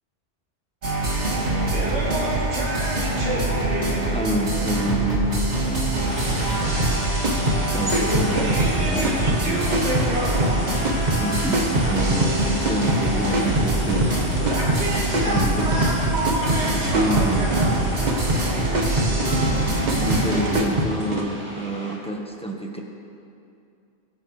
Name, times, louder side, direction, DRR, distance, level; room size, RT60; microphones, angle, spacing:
sound 1, 0.8-20.6, right 1 dB, 65° right, 2.2 m, -24 dB
voice 1, 4.0-5.3 7.7-10.0 11.2-14.1 15.2-15.9 16.7-18.2 20.0-22.8, right 1 dB, 5° left, 0 dB, 1.1 m, -28 dB
sound 2, 6.1-22.0, equal, 15° right, 2.3 m, -37 dB
sound 3, 6.8-21.2, right 1 dB, 40° right, 1.2 m, -24 dB
21.0 x 9.7 x 3.2 m, 2.6 s
omnidirectional pair, 1.3 m